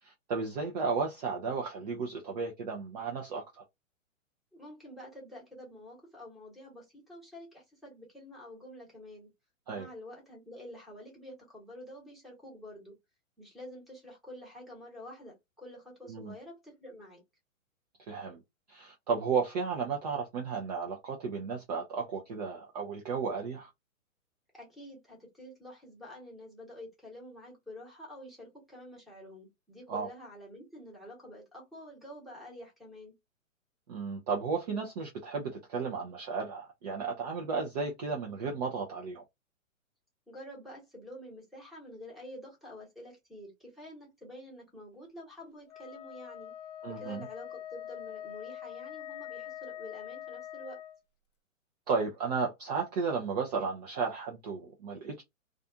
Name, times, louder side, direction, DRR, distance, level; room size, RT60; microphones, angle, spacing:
voice 1, 0.0-3.6 9.7-9.9 16.1-16.3 18.1-18.4 18.7-23.7 29.9-30.1 33.9-39.2 46.8-47.2 51.9-55.2, right 5 dB, 30° right, 0.5 m, -34 dB
voice 2, 4.5-9.3 9.7-12.9 13.4-17.2 24.5-33.1 40.3-46.5 46.9-50.8, left 1 dB, ahead, 1.0 m, -48 dB
Wind instrument woodwind instrument, 45.7-51.0, left 11 dB, 30° left, 0.4 m, -44 dB
2.4 x 2.4 x 2.6 m
hypercardioid pair, 125°, 41 cm